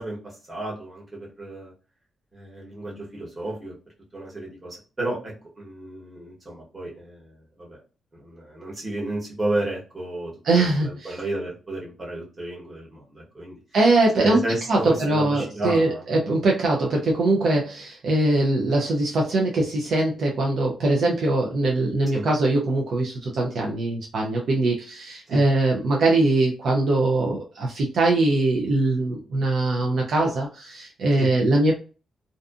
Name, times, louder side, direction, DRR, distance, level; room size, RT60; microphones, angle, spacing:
voice 1, 0.0-1.7 2.3-3.7 4.1-7.8 8.1-13.5 14.2-16.1 22.1-22.2 25.3-25.4 31.2-31.3, right 2 dB, 20° right, -4 dB, 1.1 m, -32 dB
voice 2, 10.4-11.2 13.7-14.4 14.7-31.7, right 2 dB, 65° right, -1 dB, 0.5 m, -22 dB
2.6 x 2.4 x 2.4 m, 0.35 s
cardioid pair, 130°, 0 cm